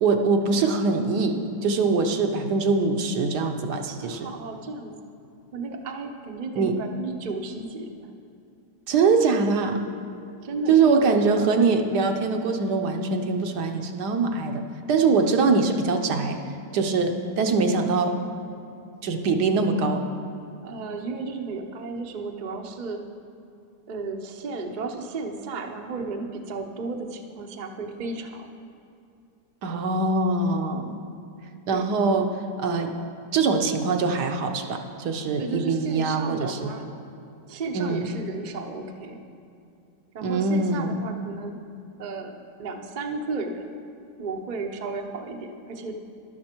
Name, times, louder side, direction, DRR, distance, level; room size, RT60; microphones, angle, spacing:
voice 1, 0.0-1.4 1.6-4.3 6.6-6.7 8.9-9.8 10.7-14.6 14.9-16.4 16.7-18.1 19.0-20.0 29.6-31.0 31.7-32.3 32.6-32.9 33.3-36.7 37.7-38.0 40.2-41.0, right 4 dB, 70° right, 4 dB, 1.4 m, -23 dB
voice 2, 4.0-4.9 5.5-8.1 10.4-11.2 20.6-23.0 23.9-28.5 31.7-32.2 35.4-36.9 37.5-39.2 40.1-41.6 42.0-43.7 44.2-46.0, right 3 dB, 40° right, 3 dB, 0.6 m, -34 dB
13.0 x 11.5 x 4.4 m, 2.6 s
omnidirectional pair, 1.8 m